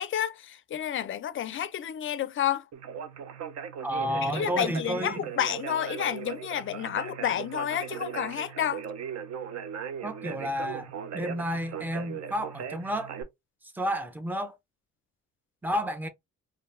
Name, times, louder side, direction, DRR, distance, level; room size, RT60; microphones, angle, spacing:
voice 1, 0.0-2.7 4.2-8.8, left 10 dB, 45° left, 0.4 m, -30 dB
Conversation, 2.7-13.2, right 8 dB, 60° right, 0.6 m, -38 dB
voice 2, 3.8-5.2 10.0-13.1 13.7-14.5 15.6-16.1, equal, 5° right, 0.5 m, -31 dB
2.5 x 2.2 x 3.1 m
cardioid pair, 90°, 30 cm